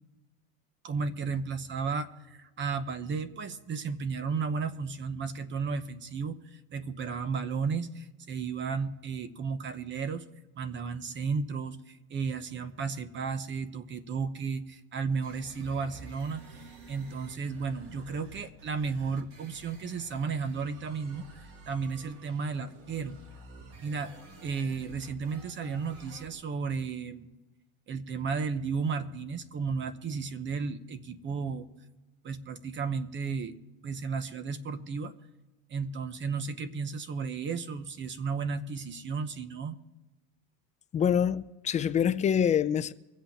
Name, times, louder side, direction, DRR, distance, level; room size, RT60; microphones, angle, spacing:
voice 1, 0.8-6.4 6.7-10.3 10.6-23.2 23.8-24.1 24.4-27.3 27.9-31.7 32.2-33.5 33.8-35.1 35.7-39.8, right 5 dB, 30° right, 1.0 m, -34 dB
sound 1, 15.2-26.3, right 3 dB, 60° right, 2.9 m, -50 dB
voice 2, 40.9-42.9, left 8 dB, 20° left, 0.4 m, -25 dB
24.5 x 8.3 x 4.4 m
cardioid pair, 155°, 36 cm